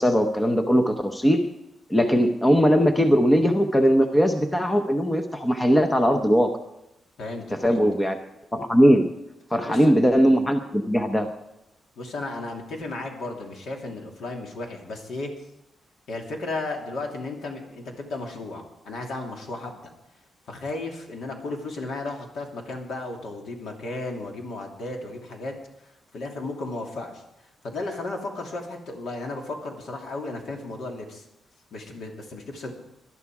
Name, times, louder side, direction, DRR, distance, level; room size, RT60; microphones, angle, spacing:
voice 1, 0.0-1.5 1.9-6.5 7.5-8.2 8.5-9.1 9.5-11.3, equal, 10° left, 6 dB, 0.7 m, -20 dB
voice 2, 7.2-7.9 9.6-9.9 12.0-15.3 16.1-19.8 20.5-25.5 25.8-27.2 27.6-31.2 31.7-32.7, left 2 dB, 60° left, 1 dB, 2.7 m, -34 dB
19.5 x 11.5 x 4.8 m, 0.87 s
wide cardioid pair, 180°, 0 cm